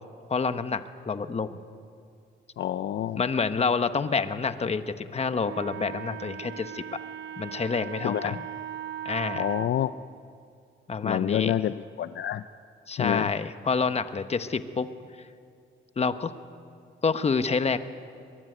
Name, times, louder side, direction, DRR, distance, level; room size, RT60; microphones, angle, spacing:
voice 1, 0.3-1.6 3.2-7.0 7.4-8.5 9.0-9.4 10.9-11.6 12.9-14.9 16.0-16.3 17.0-17.8, left 5 dB, 30° left, 10 dB, 1.1 m, -28 dB
voice 2, 2.6-3.2 8.0-8.3 9.4-9.9 11.0-12.4 13.0-13.3, left 11 dB, 60° left, 12 dB, 0.6 m, -28 dB
Wind instrument woodwind instrument, 5.4-9.7, right 10 dB, 70° right, 0.8 m, -38 dB
23.5 x 21.5 x 9.4 m, 2.3 s
cardioid pair, 105°, 20 cm